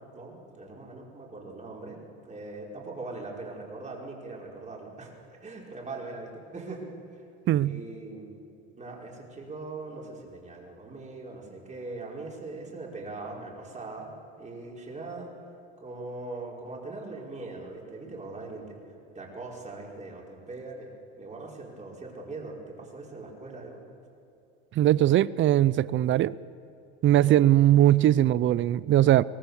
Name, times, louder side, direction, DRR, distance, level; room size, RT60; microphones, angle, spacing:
voice 1, 0.1-2.0 2.2-6.8 7.1-7.2 7.6-8.3 8.8-14.1 14.4-15.3 15.8-18.8 19.1-23.8 27.2-27.4, right 3 dB, 25° right, -2 dB, 5.0 m, -41 dB
voice 2, 7.5-7.8 24.8-26.3 27.0-29.2, right 13 dB, 40° right, 20 dB, 0.6 m, -20 dB
23.0 x 18.5 x 7.2 m, 2.7 s
supercardioid pair, 115°, 31 cm